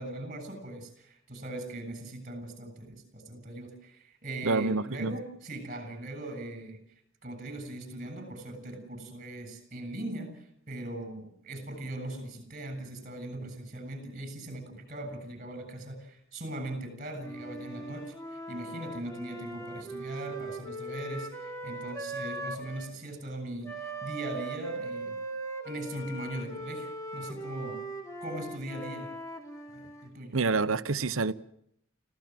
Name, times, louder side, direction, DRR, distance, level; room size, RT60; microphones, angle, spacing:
voice 1, 0.0-6.8 7.2-25.2 25.6-27.8 28.2-29.1 29.7-30.4, right 1 dB, 40° right, 7.4 m, -40 dB
voice 2, 4.4-5.1 30.3-31.3, right 4 dB, 85° right, 0.9 m, -27 dB
Wind instrument woodwind instrument, 17.2-22.9 23.6-30.1, right 2 dB, 15° left, 3.4 m, -40 dB
25.5 x 16.5 x 7.6 m
head